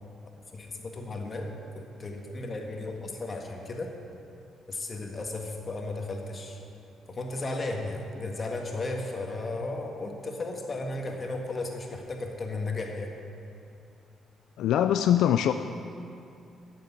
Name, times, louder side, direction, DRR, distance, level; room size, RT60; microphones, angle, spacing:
voice 1, 0.5-3.9 4.7-6.6 7.1-13.1, left 2 dB, 35° left, 2 dB, 1.6 m, -35 dB
voice 2, 14.6-15.5, left 11 dB, 80° left, 8 dB, 0.3 m, -22 dB
9.5 x 6.7 x 8.2 m, 2.6 s
cardioid pair, 90°, 0 cm